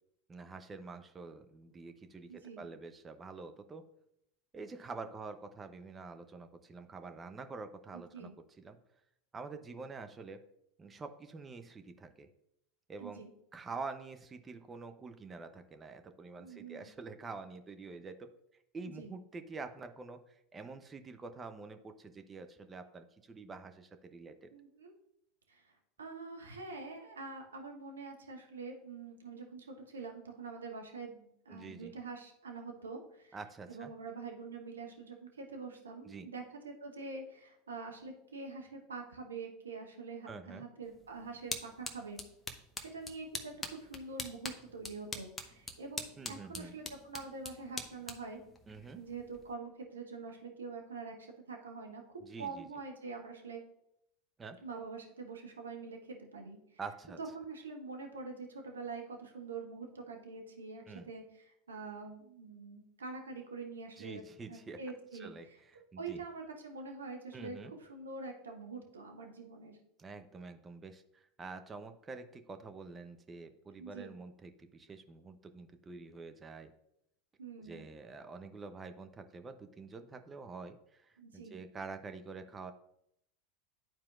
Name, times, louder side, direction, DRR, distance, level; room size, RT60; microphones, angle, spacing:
voice 1, 0.3-3.8 4.5-8.3 8.6-8.8 9.3-10.4 10.8-12.3 12.9-13.2 13.5-18.3 18.7-24.5 31.5-31.9 33.3-33.9 36.0-36.3 40.3-40.7 46.2-46.7 48.7-49.0 52.2-52.7 54.4-54.6 56.8-57.2 60.9-61.1 64.0-64.8 65.1-66.2 67.3-67.7 70.0-76.7 77.6-82.7, right 4 dB, 25° right, 8 dB, 0.7 m, -47 dB
voice 2, 2.3-2.7 7.9-8.3 13.0-13.3 16.4-16.9 18.9-19.1 24.5-24.9 25.5-25.7 26.0-33.4 33.7-42.2 42.8-48.4 48.9-53.6 54.6-56.8 57.2-64.2 64.5-65.3 66.0-69.8 73.8-74.1 77.4-77.9 81.2-81.6, right 4 dB, 85° right, 3 dB, 1.0 m, -45 dB
sound 1, 40.8-49.5, left 2 dB, 15° left, 0.9 m, -45 dB
11.5 x 4.4 x 2.4 m, 0.77 s
hypercardioid pair, 85°, 0 cm